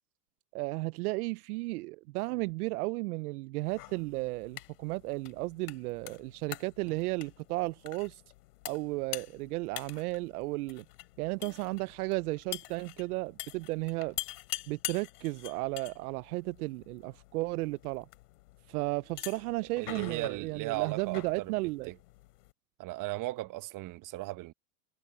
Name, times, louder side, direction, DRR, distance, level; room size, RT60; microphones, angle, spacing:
voice 1, 0.5-8.2 8.6-10.8 11.2-14.2 14.7-18.1 18.7-21.9, right 22 dB, 70° right, 0.8 m, -34 dB
sound 1, 3.7-22.5, left 18 dB, 75° left, 3.4 m, -46 dB
voice 2, 19.8-21.5 21.9-22.0 22.8-24.5, right 18 dB, 40° right, 1.2 m, -37 dB
hypercardioid pair, 105°, 47 cm